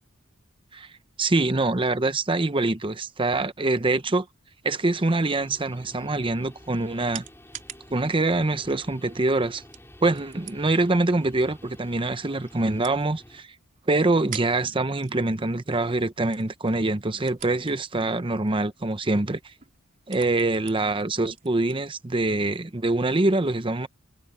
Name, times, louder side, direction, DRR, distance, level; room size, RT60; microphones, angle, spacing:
voice 1, 1.2-4.3 4.6-7.2 7.9-9.6 10.0-13.5 13.9-19.4 20.1-23.9, right 2 dB, 25° right, 0.8 m, -24 dB
Guitar, 4.8-13.5, left 1 dB, 10° left, 5.6 m, -50 dB
sound 1, 6.3-22.7, right 9 dB, 40° right, 4.1 m, -48 dB
head